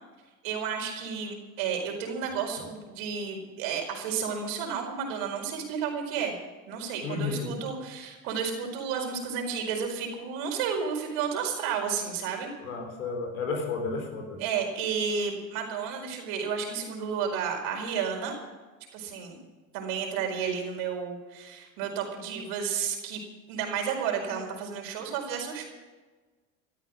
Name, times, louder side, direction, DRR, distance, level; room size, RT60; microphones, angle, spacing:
voice 1, 0.4-6.3 6.7-12.5 14.4-18.4 18.9-19.4 19.7-23.2 23.5-25.7, right 6 dB, 70° right, 2 dB, 4.9 m, -32 dB
voice 2, 7.0-7.5 12.6-14.4, left 4 dB, 85° left, 3 dB, 3.8 m, -32 dB
15.5 x 13.5 x 6.3 m, 1.3 s
hypercardioid pair, 75°, 40 cm